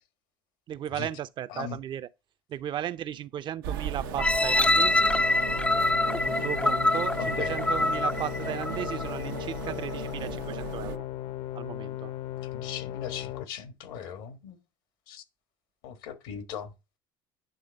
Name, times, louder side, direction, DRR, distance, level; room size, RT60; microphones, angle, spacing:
voice 1, 0.7-2.1 2.5-5.1 6.3-11.0 11.5-12.1, right 10 dB, 45° right, 0.6 m, -35 dB
voice 2, 1.5-1.8 7.2-7.6 12.5-14.6 15.1-15.2 15.8-16.7, left 8 dB, 75° left, 1.5 m, -38 dB
sound 1, 3.6-11.0, right 11 dB, 85° right, 0.7 m, -37 dB
sound 2, 4.0-13.5, left 13 dB, 55° left, 0.8 m, -37 dB
sound 3, 4.2-9.1 9.7-9.8, left 2 dB, 10° left, 0.3 m, -25 dB
9.6 x 3.4 x 5.3 m
hypercardioid pair, 85°, 11 cm